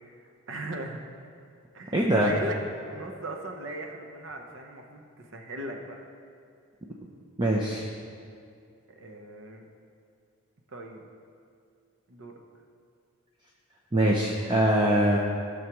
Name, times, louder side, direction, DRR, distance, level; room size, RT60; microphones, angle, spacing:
voice 1, 0.5-1.0 1.7-2.6 2.8-6.0 8.9-9.6 10.7-11.0 12.1-12.4, right 1 dB, 60° right, 2 dB, 0.9 m, -38 dB
voice 2, 1.9-2.3 7.4-7.9 13.9-15.2, right 1 dB, 20° right, -1 dB, 0.6 m, -23 dB
16.0 x 6.4 x 3.0 m, 2.3 s
head